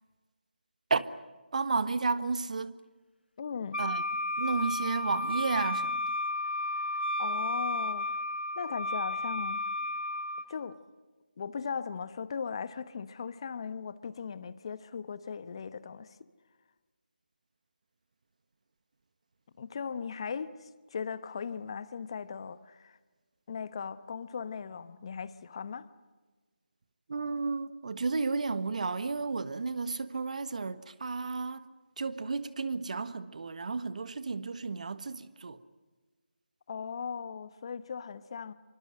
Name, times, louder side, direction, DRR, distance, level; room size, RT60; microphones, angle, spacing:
voice 1, 1.5-2.8 3.8-4.0 4.4-6.0 27.1-31.7 32.0-35.6, right 4 dB, 45° right, 1.5 m, -32 dB
voice 2, 3.4-3.8 7.2-8.1 8.6-9.7 10.5-10.8 11.4-16.2 19.6-23.0 23.5-25.9 36.7-38.5, left 6 dB, 30° left, 1.1 m, -38 dB
Wind instrument woodwind instrument, 3.7-10.5, left 1 dB, 80° left, 1.6 m, -32 dB
27.0 x 24.5 x 7.8 m
figure-of-eight pair, 160°, 6 cm